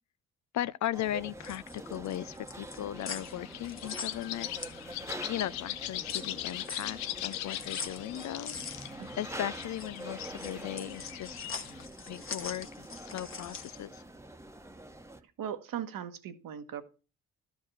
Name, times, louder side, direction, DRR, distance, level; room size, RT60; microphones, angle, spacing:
voice 1, 0.5-4.5 5.3-8.6 9.2-11.4 12.1-12.7 13.0-14.0, left 13 dB, 45° left, 0.5 m, -37 dB
sound 1, 0.9-15.2, right 1 dB, 5° right, 1.1 m, -46 dB
sound 2, 1.2-5.3 5.7-13.8, left 5 dB, 30° left, 1.5 m, -43 dB
sound 3, 3.0-11.9, left 13 dB, 85° left, 0.8 m, -41 dB
voice 2, 15.4-16.8, right 9 dB, 55° right, 1.3 m, -38 dB
13.0 x 5.1 x 6.2 m
hypercardioid pair, 50°, 40 cm